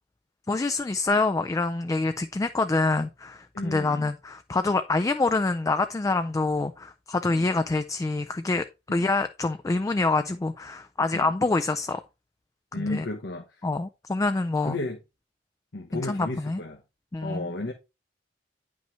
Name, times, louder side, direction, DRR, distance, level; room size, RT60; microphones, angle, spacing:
voice 1, 0.5-8.7 8.9-12.0 12.7-13.0 13.6-14.8 15.9-16.6 17.1-17.5, left 3 dB, 20° left, 0.3 m, -26 dB
voice 2, 3.5-4.1 7.3-7.5 8.9-9.1 11.1-11.3 12.7-13.7 14.6-15.0 15.7-16.8 17.2-17.7, left 2 dB, 75° left, 1.0 m, -33 dB
9.2 x 5.4 x 3.1 m
head